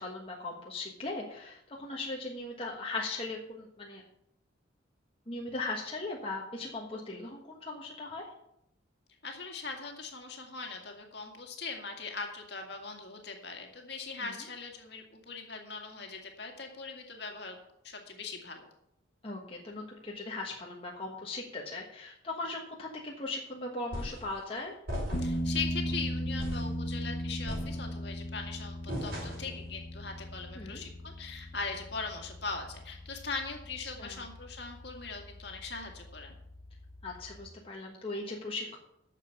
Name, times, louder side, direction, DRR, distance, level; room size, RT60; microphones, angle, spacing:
voice 1, 0.0-4.0 5.3-8.2 14.2-14.3 19.2-24.7 30.5-30.8 34.0-34.2 37.0-38.8, left 2 dB, 30° left, -2 dB, 1.3 m, -38 dB
voice 2, 9.2-17.6 17.8-18.6 25.2-36.4, left 4 dB, 55° left, 3 dB, 2.1 m, -40 dB
sound 1, 23.9-24.3 24.9-25.5 25.9-26.0 26.4-26.7 27.5-28.1 28.9-29.6, equal, 50° right, 4.7 m, -38 dB
sound 2, 25.1-37.4, equal, 75° left, 1.5 m, -38 dB
10.0 x 6.9 x 6.9 m, 0.79 s
head